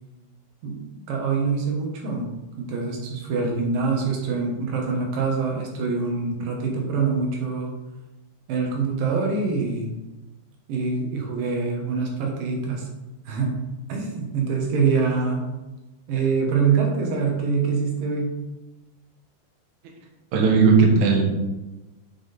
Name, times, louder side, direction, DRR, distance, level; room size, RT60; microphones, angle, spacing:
voice 1, 1.1-2.3 2.6-7.7 8.5-9.9 10.7-12.9 13.3-13.6 13.9-15.5 16.1-18.4, right 5 dB, 65° right, 0 dB, 2.6 m, -24 dB
voice 2, 20.3-21.2, right 5 dB, 80° right, 1 dB, 1.6 m, -16 dB
9.6 x 6.3 x 3.5 m, 1.1 s
omnidirectional pair, 5.2 m